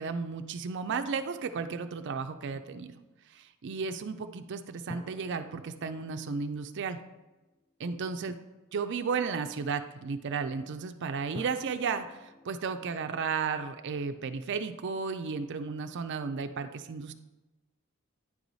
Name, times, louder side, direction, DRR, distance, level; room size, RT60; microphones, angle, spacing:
voice 1, 0.0-3.0 3.3-7.0 7.8-8.4 8.7-17.1, right 5 dB, 55° right, 9 dB, 0.4 m, -34 dB
sound 1, 4.9-7.7 11.3-14.7, left 2 dB, 20° left, 0.3 m, -51 dB
9.9 x 4.7 x 4.0 m, 1.1 s
head